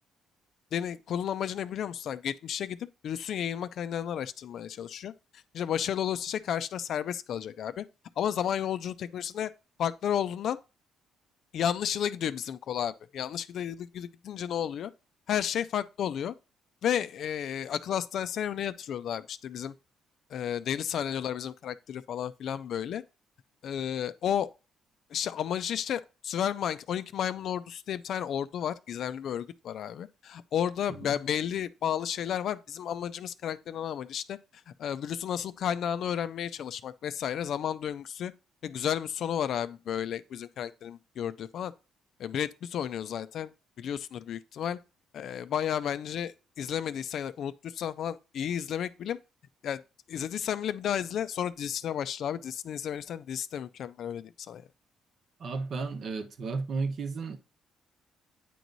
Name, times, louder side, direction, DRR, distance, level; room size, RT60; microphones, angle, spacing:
voice 1, 0.7-7.8 8.2-9.5 9.8-10.6 11.5-14.9 15.3-16.3 16.8-19.7 20.3-23.0 23.6-24.5 25.1-34.4 34.7-38.3 38.6-41.7 42.2-43.5 43.8-44.8 45.1-49.2 49.6-49.8 50.1-54.6, left 9 dB, 65° left, 0.4 m, -32 dB
voice 2, 55.4-57.4, right 4 dB, 50° right, 0.9 m, -33 dB
9.1 x 3.1 x 3.9 m
cardioid pair, 105°, 0 cm